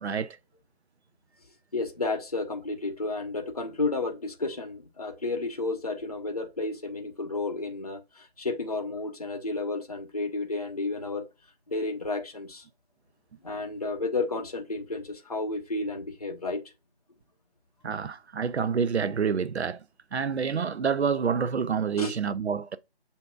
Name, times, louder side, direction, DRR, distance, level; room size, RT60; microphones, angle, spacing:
voice 1, 0.0-0.4 17.8-19.8 20.1-22.8, right 6 dB, 85° right, 0.5 m, -28 dB
voice 2, 1.7-11.3 11.7-12.6 13.4-16.6 22.0-22.1, left 3 dB, 35° left, 0.6 m, -32 dB
7.1 x 2.6 x 2.3 m
figure-of-eight pair, 160°, 32 cm